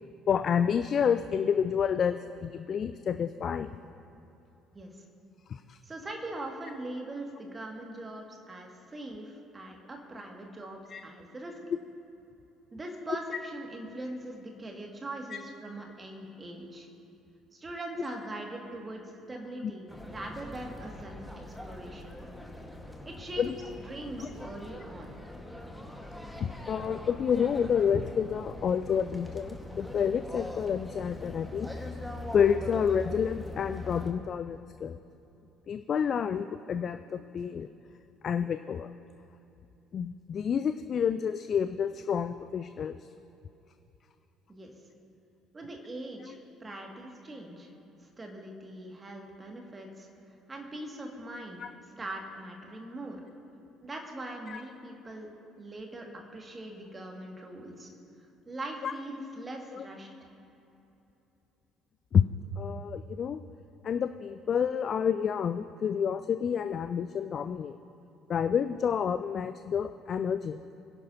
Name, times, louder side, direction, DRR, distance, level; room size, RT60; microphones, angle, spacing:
voice 1, 0.3-3.7 5.5-5.8 10.9-11.0 13.1-13.2 15.3-15.4 19.6-19.7 23.4-23.5 24.2-24.3 26.4-31.7 32.3-35.0 35.7-37.7 38.2-38.9 39.9-43.0 51.6-51.7 54.5-54.6 58.8-58.9 59.7-59.8 62.1-62.2 62.6-63.4 63.8-67.8 68.3-70.6, left 7 dB, 40° left, 10 dB, 0.4 m, -29 dB
voice 2, 5.8-11.6 12.7-16.9 17.5-22.2 23.1-23.5 23.9-25.2 44.5-44.7 45.5-47.7 48.0-50.1 50.5-51.6 52.0-53.2 53.8-55.3 55.6-57.9 58.5-60.1, right 1 dB, 25° right, 1 dB, 2.2 m, -41 dB
sound 1, 19.9-34.1, left 1 dB, ahead, 1.6 m, -42 dB
22.5 x 11.0 x 2.9 m, 2.9 s
figure-of-eight pair, 50°, 0 cm